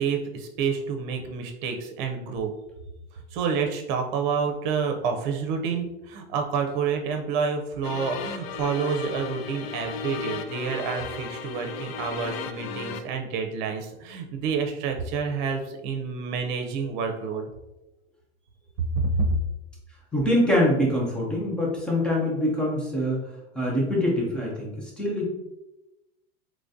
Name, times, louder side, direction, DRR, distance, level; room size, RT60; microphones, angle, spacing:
voice 1, 0.0-2.5 3.3-17.4 18.8-19.4, right 5 dB, 50° right, 4 dB, 0.6 m, -28 dB
sound 1, 7.8-13.0, left 6 dB, 65° left, 0.4 m, -35 dB
voice 2, 20.1-23.2 23.5-25.3, left 1 dB, 5° left, -4 dB, 0.3 m, -24 dB
3.6 x 3.2 x 2.6 m, 0.96 s
supercardioid pair, 170°, 31 cm